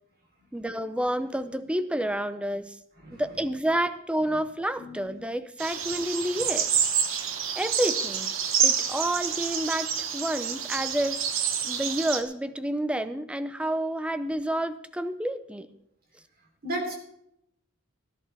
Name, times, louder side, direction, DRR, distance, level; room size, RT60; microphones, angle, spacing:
voice 1, 0.5-2.8 3.1-6.7 7.6-11.2 11.6-15.7, right 1 dB, 5° right, 12 dB, 0.5 m, -29 dB
voice 2, 4.8-5.2 16.6-17.0, right 1 dB, 50° right, 1 dB, 3.4 m, -35 dB
sound 1, 5.6-12.2, right 8 dB, 70° right, 1.1 m, -28 dB
17.5 x 11.0 x 3.4 m, 0.79 s
head